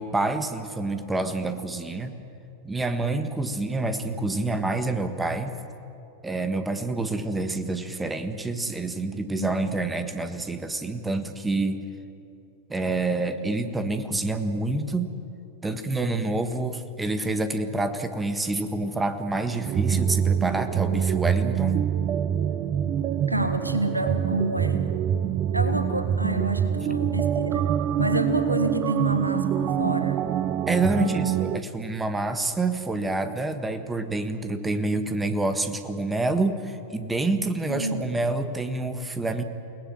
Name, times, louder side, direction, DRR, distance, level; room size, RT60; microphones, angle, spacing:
voice 1, 0.0-2.1 2.6-5.5 6.2-11.8 12.7-15.1 15.6-21.9 30.7-39.4, right 2 dB, 10° right, 9 dB, 1.6 m, -27 dB
voice 2, 9.4-9.7 23.3-24.8 25.5-27.7 28.0-30.2 31.0-31.2 37.7-38.1, right 1 dB, 85° right, 9 dB, 1.6 m, -28 dB
sound 1, 19.6-31.6, right 9 dB, 35° right, 0.8 m, -25 dB
29.5 x 18.5 x 7.5 m, 2.8 s
figure-of-eight pair, 90°, 0 cm